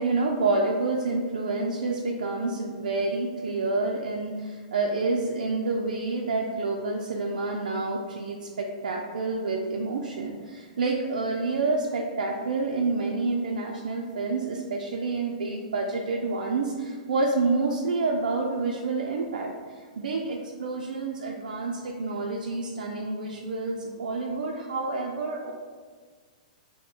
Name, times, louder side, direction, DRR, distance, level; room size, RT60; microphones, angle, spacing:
voice 1, 0.0-19.5 20.0-25.5, right 3 dB, 90° right, 0 dB, 0.4 m, -28 dB
3.8 x 2.1 x 4.5 m, 1.5 s
hypercardioid pair, 140°, 4 cm